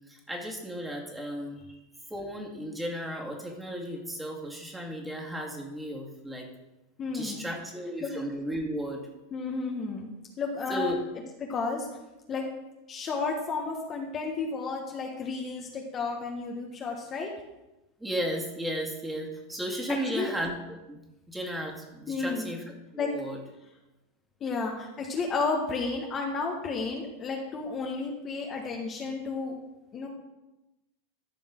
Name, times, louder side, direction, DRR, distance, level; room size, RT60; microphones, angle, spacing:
voice 1, 0.1-1.6 2.1-6.5 7.1-9.0 10.7-11.0 18.0-22.6 22.9-23.4, equal, 5° right, -1 dB, 2.3 m, -34 dB
voice 2, 7.0-7.4 8.0-8.1 9.3-10.1 10.4-10.9 11.4-11.9 12.3-12.5 12.9-17.3 19.9-20.3 22.1-22.5 23.0-23.1 24.4-29.5 29.9-30.1, left 4 dB, 35° left, 1 dB, 1.4 m, -32 dB
14.0 x 5.4 x 3.8 m, 1.0 s
hypercardioid pair, 90°, 0 cm